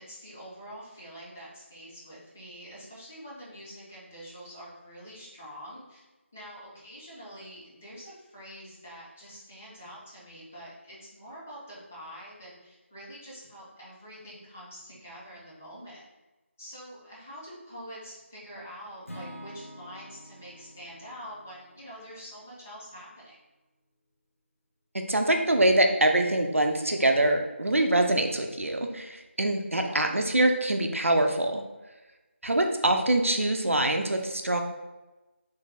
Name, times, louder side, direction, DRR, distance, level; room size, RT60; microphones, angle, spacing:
voice 1, 0.0-6.0 6.3-16.1 16.6-23.4 29.7-30.1, equal, 10° left, -8 dB, 0.3 m, -45 dB
Acoustic guitar / Strum, 19.1-23.1, equal, 85° left, 0.7 m, -48 dB
voice 2, 24.9-31.6 32.4-34.6, right 1 dB, 80° right, 4 dB, 0.5 m, -24 dB
3.3 x 2.2 x 3.4 m, 1.1 s
figure-of-eight pair, 165°, 7 cm